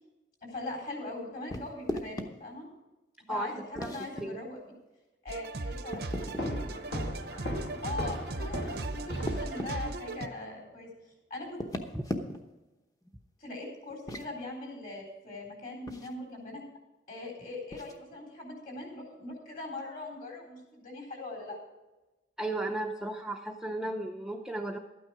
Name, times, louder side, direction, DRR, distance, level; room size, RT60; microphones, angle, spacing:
voice 1, 0.4-2.7 3.3-4.6 5.2-6.3 7.8-10.9 11.3-11.6 13.4-16.6 17.1-21.6, left 2 dB, 45° left, 0 dB, 3.8 m, -41 dB
sound 1, 1.5-2.3 3.8-4.2 5.9-6.5 8.4-9.7 11.5-12.6 13.9-14.3 15.9-16.1 17.7-18.0, left 1 dB, 20° left, 0.9 m, -37 dB
voice 2, 3.3-3.9 4.2-4.4 11.9-12.0 22.4-24.8, right 1 dB, 5° right, 1 dB, 0.6 m, -35 dB
sound 2, 5.3-10.3, right 2 dB, 55° right, 0.7 m, -37 dB
sound 3, 6.4-10.1, equal, 65° left, 2.0 m, -37 dB
12.5 x 9.3 x 4.8 m, 1.1 s
head